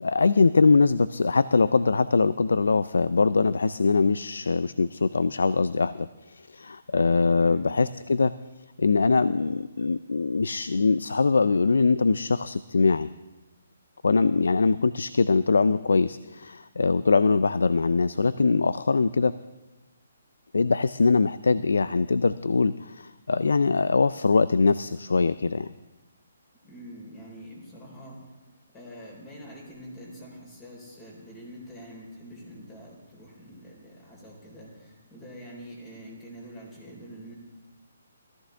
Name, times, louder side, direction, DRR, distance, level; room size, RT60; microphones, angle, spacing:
voice 1, 0.0-8.3 8.8-13.1 14.0-19.3 20.5-25.7, left 4 dB, 85° left, 16 dB, 0.4 m, -22 dB
voice 2, 26.6-28.2 28.7-37.3, equal, 20° left, -2 dB, 4.2 m, -45 dB
18.0 x 14.0 x 3.4 m, 1.1 s
hypercardioid pair, 155°, 0 cm